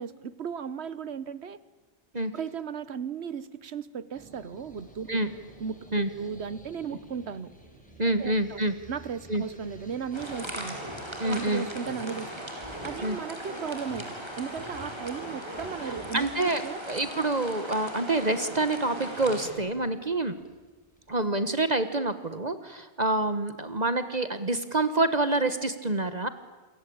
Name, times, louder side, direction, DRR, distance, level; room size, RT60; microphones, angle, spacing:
voice 1, 0.0-1.6 2.3-5.1 5.6-7.5 8.0-8.6 8.9-10.8 11.2-12.3 12.8-16.8, right 6 dB, 85° right, 17 dB, 1.3 m, -36 dB
sound 1, 4.1-21.2, right 1 dB, 5° left, 6.1 m, -53 dB
voice 2, 8.0-8.7 9.3-9.4 11.2-11.7 13.0-13.2 15.8-16.6 16.9-20.3 21.1-26.3, right 2 dB, 40° right, 11 dB, 1.5 m, -27 dB
sound 2, 10.1-10.9 11.8-12.1 12.6-13.0 13.4-13.6 13.8-14.0 14.5-16.1 18.3-18.5 18.9-19.7, equal, 30° left, 8.1 m, -43 dB
sound 3, 10.1-19.5, right 1 dB, 25° right, 4.6 m, -39 dB
28.5 x 23.0 x 8.7 m, 1.3 s
omnidirectional pair, 1.1 m